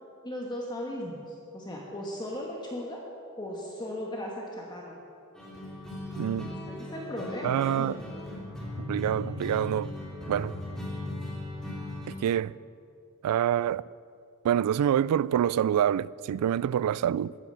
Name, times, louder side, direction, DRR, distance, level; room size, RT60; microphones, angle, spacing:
voice 1, 0.2-3.0 3.4-4.9 6.7-7.9, left 1 dB, 20° left, 1.4 m, -37 dB
sound 1, 5.3-12.1, left 1 dB, 5° left, 2.8 m, -38 dB
voice 2, 6.2-6.5 7.4-8.0 8.8-9.9 10.3-10.6 12.2-12.6 13.2-13.8 14.4-17.4, right 9 dB, 90° right, 0.3 m, -26 dB
14.5 x 11.0 x 5.6 m
head